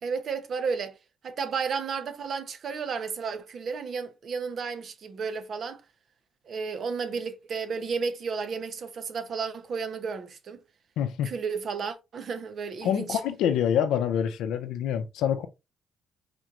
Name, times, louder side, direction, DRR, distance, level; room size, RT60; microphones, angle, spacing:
voice 1, 0.0-0.9 1.2-5.8 6.5-10.6 11.2-13.2, right 5 dB, 55° right, 0.8 m, -32 dB
voice 2, 11.0-11.3 12.8-15.5, left 9 dB, 90° left, 0.5 m, -26 dB
4.3 x 3.0 x 2.4 m
cardioid pair, 90°, 0 cm